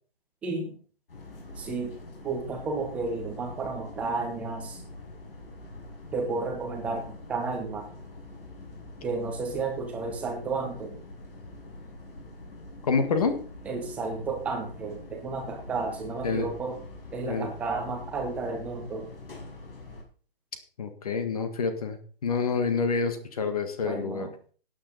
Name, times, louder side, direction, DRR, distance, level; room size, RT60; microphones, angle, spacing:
voice 1, 0.4-0.8 1.6-4.8 6.1-7.9 9.0-11.0 13.6-16.8 17.1-19.1 23.8-24.3, right 3 dB, 5° right, 2 dB, 1.0 m, -32 dB
sound 1, 1.1-20.0, left 2 dB, 65° left, 6.1 m, -45 dB
voice 2, 12.9-13.4 16.2-16.5 17.2-17.5 20.8-24.3, left 5 dB, 40° left, 9 dB, 1.6 m, -27 dB
14.5 x 9.3 x 4.1 m, 0.42 s
hypercardioid pair, 170°, 30 cm